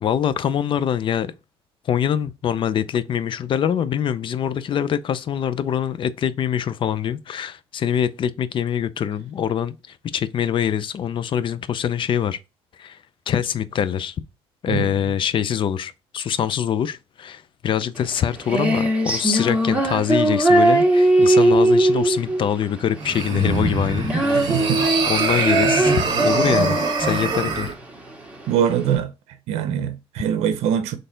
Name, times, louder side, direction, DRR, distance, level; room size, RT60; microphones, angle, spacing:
voice 1, 0.0-1.3 1.9-12.4 12.8-13.0 13.3-14.2 14.6-24.7 25.1-27.7, left 9 dB, 50° left, 0.5 m, -24 dB
Female singing, 18.0-28.9, right 1 dB, 10° right, 1.6 m, -20 dB
sound 1, 23.0-27.7, right 4 dB, 45° right, 1.5 m, -24 dB
voice 2, 24.3-24.8 28.5-29.1 29.5-31.0, right 9 dB, 90° right, 0.6 m, -23 dB
4.2 x 3.3 x 3.8 m
cardioid pair, 95°, 11 cm